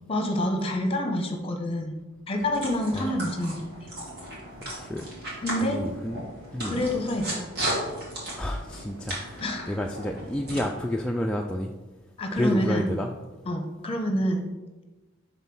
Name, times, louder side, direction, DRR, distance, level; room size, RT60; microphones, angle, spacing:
voice 1, 0.1-1.9 2.3-3.6 5.4-5.8 6.6-7.4 9.4-9.8 12.2-12.9 13.5-14.4, left 1 dB, 30° left, 4 dB, 0.9 m, -27 dB
sound 1, 2.3-10.6, right 1 dB, 55° right, 2.4 m, -36 dB
voice 2, 4.6-5.1 5.6-6.2 6.5-6.8 8.4-11.7 12.3-13.1, left 1 dB, 5° left, 0 dB, 0.3 m, -30 dB
5.7 x 3.9 x 5.9 m, 1.2 s
head